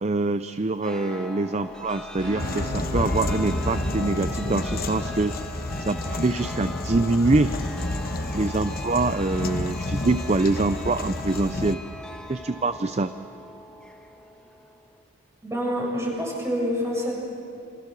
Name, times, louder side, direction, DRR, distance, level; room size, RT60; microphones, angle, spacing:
voice 1, 0.0-5.4 5.8-7.5 8.3-11.8 12.3-13.1, right 3 dB, 30° right, 11 dB, 0.5 m, -25 dB
Chime, 0.8-15.0, left 1 dB, 5° left, 1.7 m, -40 dB
Keyboard (musical), 1.9-12.5, right 3 dB, 55° right, 4.8 m, -43 dB
sound 1, 2.4-11.7, left 2 dB, 45° left, 1.1 m, -30 dB
voice 2, 15.4-17.2, equal, 15° right, -3 dB, 6.9 m, -27 dB
27.5 x 27.0 x 6.8 m, 2.8 s
head